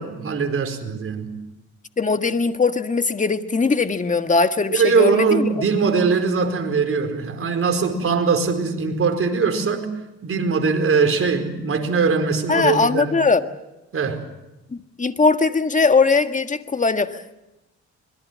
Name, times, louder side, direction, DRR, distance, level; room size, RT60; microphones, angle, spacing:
voice 1, 0.0-1.4 4.7-9.9 10.2-13.1 13.9-14.2, right 5 dB, 45° right, 5 dB, 4.7 m, -21 dB
voice 2, 2.0-5.5 12.5-13.5 14.7-17.4, left 4 dB, 25° left, 8 dB, 1.6 m, -20 dB
26.0 x 22.0 x 7.5 m, 0.97 s
cardioid pair, 90°, 30 cm